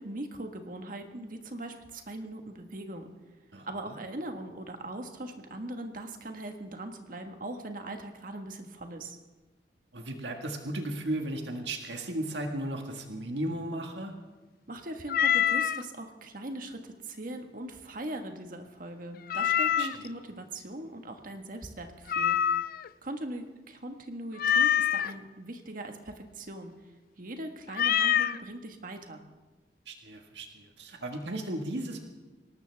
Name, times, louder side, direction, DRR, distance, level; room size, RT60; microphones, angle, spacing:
voice 1, 0.0-3.1 3.7-9.2 14.7-22.4 23.0-26.7 27.2-29.2, right 1 dB, 50° right, 5 dB, 1.5 m, -40 dB
voice 2, 3.5-4.0 9.9-14.2 19.8-20.0 29.9-32.1, right 1 dB, 80° right, 3 dB, 1.8 m, -35 dB
Meow, 15.1-15.8 19.3-20.1 22.1-22.9 24.4-25.1 27.7-28.4, left 9 dB, 55° left, 0.4 m, -25 dB
22.0 x 18.5 x 3.5 m, 1.2 s
head